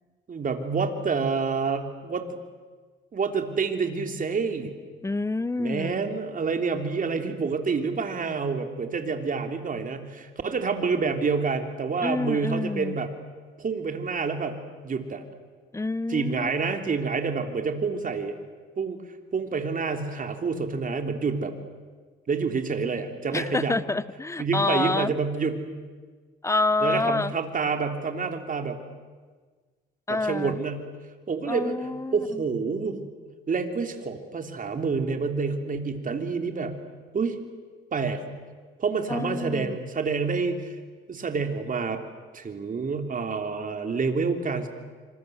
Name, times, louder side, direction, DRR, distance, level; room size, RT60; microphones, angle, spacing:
voice 1, 0.3-2.4 3.1-4.7 5.6-13.1 13.6-14.6 14.8-15.2 16.1-18.4 18.8-19.0 19.3-21.5 22.3-23.7 24.4-25.7 26.8-28.8 30.1-30.9 31.3-33.0 33.5-36.8 37.1-37.4 37.9-38.2 38.8-40.8 41.1-42.0 42.3-44.7, right 5 dB, 45° right, 6 dB, 3.4 m, -28 dB
voice 2, 5.0-6.0 12.0-13.0 15.7-16.5 23.3-25.1 26.4-27.3 30.1-30.6 31.5-32.4 39.1-39.7, left 3 dB, 15° left, 18 dB, 0.9 m, -27 dB
26.5 x 26.0 x 8.1 m, 1.5 s
cardioid pair, 90°, 20 cm